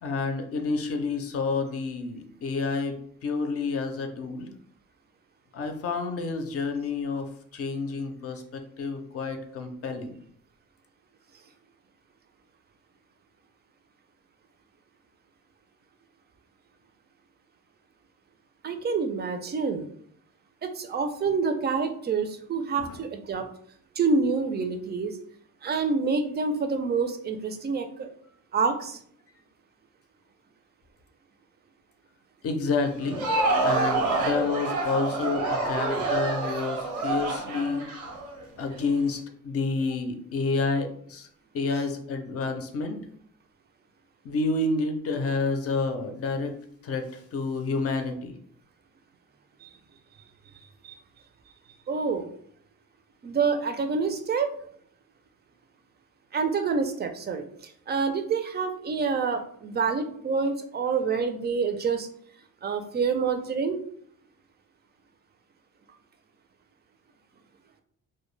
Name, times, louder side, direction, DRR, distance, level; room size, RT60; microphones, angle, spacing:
voice 1, 0.0-4.5 5.5-10.2 22.8-23.0 23.4-23.5 32.4-33.2 33.6-37.9 38.6-39.2 39.4-41.3 41.5-43.0 44.2-46.5 46.8-48.3, left 3 dB, 50° left, 5 dB, 0.5 m, -29 dB
voice 2, 18.6-19.9 20.6-23.5 24.0-25.2 25.6-28.1 28.5-29.0 49.6-49.7 50.8-51.0 51.9-52.3 53.2-54.5 56.3-62.1 62.6-63.8, right 5 dB, 35° right, 7 dB, 0.4 m, -27 dB
Crowd, 32.9-38.8, right 3 dB, 85° right, 0.7 m, -27 dB
2.2 x 2.1 x 3.1 m, 0.63 s
cardioid pair, 90°, 30 cm